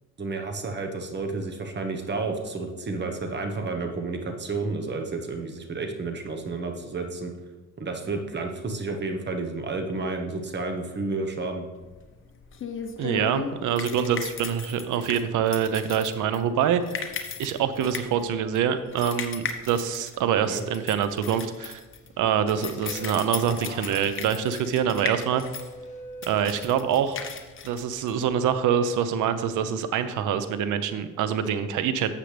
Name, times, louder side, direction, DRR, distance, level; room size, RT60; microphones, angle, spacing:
voice 1, 0.2-7.3 7.8-11.7 20.4-20.6, right 3 dB, 35° right, 4 dB, 1.3 m, -31 dB
sound 1, 11.8-28.6, left 6 dB, 40° left, 1.0 m, -37 dB
voice 2, 13.0-16.8 17.4-21.8 22.2-25.4 26.3-27.2 27.6-32.1, right 8 dB, 75° right, 11 dB, 0.8 m, -25 dB
sound 2, 22.3-27.3 27.7-28.2, right 1 dB, 25° left, 1.8 m, -43 dB
11.5 x 7.5 x 3.4 m, 1.2 s
cardioid pair, 110°, 31 cm